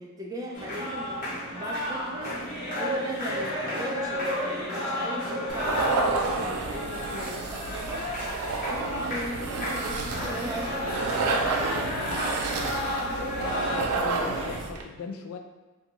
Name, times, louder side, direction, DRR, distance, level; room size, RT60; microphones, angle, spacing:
voice 1, 0.0-2.3 2.8-8.0 8.7-10.8 11.2-12.1, right 1 dB, 15° right, -2 dB, 0.4 m, -38 dB
sound 1, 0.5-14.6, left 1 dB, 35° left, 0.9 m, -32 dB
sound 2, 5.5-14.8, right 3 dB, 80° right, 0.4 m, -30 dB
voice 2, 13.4-15.4, left 5 dB, 70° left, 5 dB, 0.3 m, -38 dB
2.7 x 2.2 x 2.9 m, 1.3 s
head